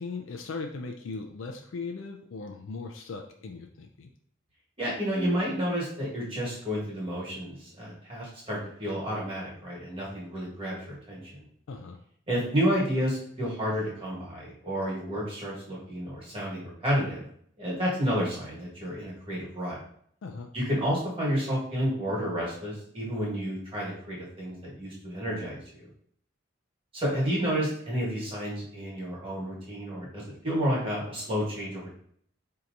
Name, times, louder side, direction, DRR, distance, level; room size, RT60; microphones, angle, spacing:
voice 1, 0.0-4.1 11.7-12.0 20.2-20.5, left 4 dB, 75° left, 4 dB, 0.4 m, -38 dB
voice 2, 4.8-11.4 12.3-17.3 17.6-19.8 20.5-25.9 26.9-31.9, equal, 25° right, -5 dB, 1.3 m, -30 dB
4.5 x 2.8 x 2.5 m, 0.64 s
head